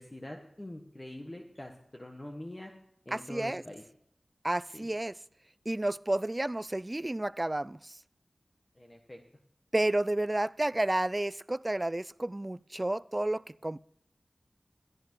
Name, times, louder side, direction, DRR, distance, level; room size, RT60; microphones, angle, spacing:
voice 1, 0.0-2.7 3.0-3.8 4.7-4.9 8.8-9.2, left 1 dB, 30° left, 1.5 m, -44 dB
voice 2, 3.1-3.6 4.4-5.1 5.7-8.0 9.7-13.8, right 1 dB, 25° right, 0.4 m, -31 dB
14.0 x 11.0 x 4.7 m
wide cardioid pair, 60°, 0 cm